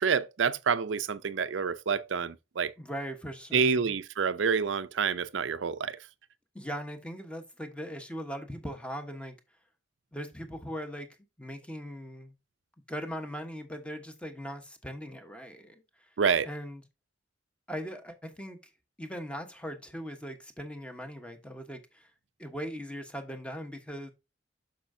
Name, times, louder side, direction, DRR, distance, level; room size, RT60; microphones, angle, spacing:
voice 1, 0.0-2.7 3.5-6.0 16.2-16.5, right 6 dB, 75° right, 0.5 m, -28 dB
voice 2, 2.8-3.9 6.5-9.3 10.1-11.1 11.4-12.3 12.9-15.8 16.4-16.8 17.7-18.6 19.0-22.1 22.4-24.1, equal, 5° left, 1.1 m, -39 dB
8.4 x 6.5 x 2.7 m
head